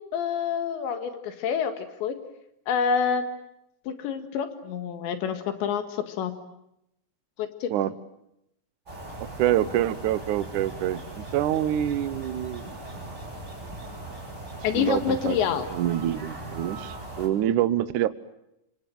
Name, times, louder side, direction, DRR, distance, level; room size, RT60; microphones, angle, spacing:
voice 1, 0.0-2.2 2.7-3.2 3.9-6.3 7.4-7.7 14.6-15.7, left 7 dB, 80° left, 8 dB, 4.0 m, -27 dB
sound 1, 8.8-17.3, right 2 dB, 15° right, 7.2 m, -39 dB
voice 2, 9.4-12.8 14.7-15.4 15.7-18.1, right 12 dB, 80° right, 14 dB, 1.8 m, -26 dB
28.5 x 25.5 x 7.7 m, 0.81 s
omnidirectional pair, 5.2 m